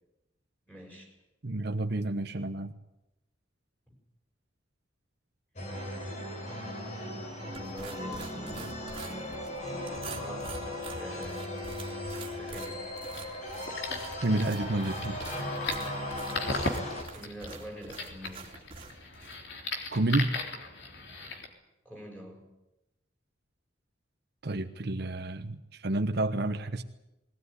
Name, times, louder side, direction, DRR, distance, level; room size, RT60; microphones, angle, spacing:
voice 1, 0.7-1.1 7.4-8.9 9.9-11.6 12.3-12.9 16.9-18.5 21.8-22.4, equal, 10° left, -1 dB, 6.4 m, -45 dB
voice 2, 1.4-2.8 14.2-15.2 19.9-20.4 24.4-26.8, right 2 dB, 60° right, 7 dB, 1.1 m, -30 dB
sound 1, 5.6-17.0, left 1 dB, 40° left, 4.8 m, -37 dB
sound 2, 7.5-19.4, right 3 dB, 30° right, 2.9 m, -46 dB
sound 3, 13.0-21.5, left 3 dB, 65° left, 3.6 m, -38 dB
21.0 x 18.0 x 9.7 m, 0.94 s
head